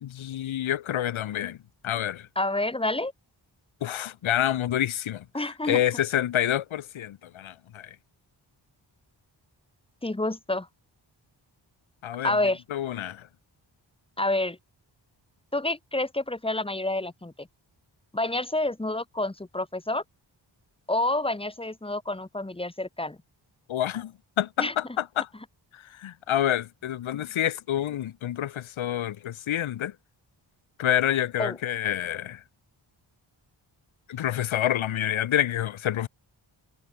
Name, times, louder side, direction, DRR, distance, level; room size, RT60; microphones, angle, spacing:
voice 1, 0.0-1.6 1.8-2.3 3.8-8.0 12.0-12.4 12.7-13.3 23.7-25.3 25.7-29.9 30.8-32.4 34.1-36.1, left 11 dB, 80° left, 0.7 m, -28 dB
voice 2, 2.4-3.1 5.3-5.8 10.0-10.7 12.2-12.6 14.2-14.6 15.5-17.5 18.1-20.0 20.9-23.2 24.6-24.7 31.4-31.6, left 2 dB, 10° left, 1.1 m, -28 dB
wide cardioid pair, 70°, 47 cm